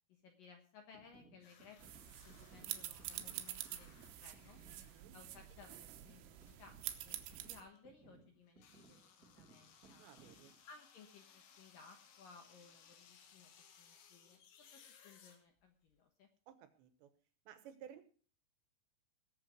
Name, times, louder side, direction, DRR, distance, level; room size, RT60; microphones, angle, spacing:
voice 1, 0.1-4.6 5.1-10.1 10.7-16.3, left 5 dB, 65° left, 4 dB, 2.3 m, -61 dB
sound 1, 0.9-10.6, right 5 dB, 50° right, 1.0 m, -65 dB
sound 2, 1.4-7.9 8.5-16.0, left 7 dB, 90° left, 4.5 m, -65 dB
sound 3, 1.8-7.6, right 13 dB, 90° right, 3.7 m, -47 dB
voice 2, 4.8-5.2 10.0-10.5 16.5-17.1 17.5-18.0, right 9 dB, 75° right, 10 dB, 3.1 m, -56 dB
20.0 x 7.5 x 5.1 m, 0.42 s
omnidirectional pair, 5.6 m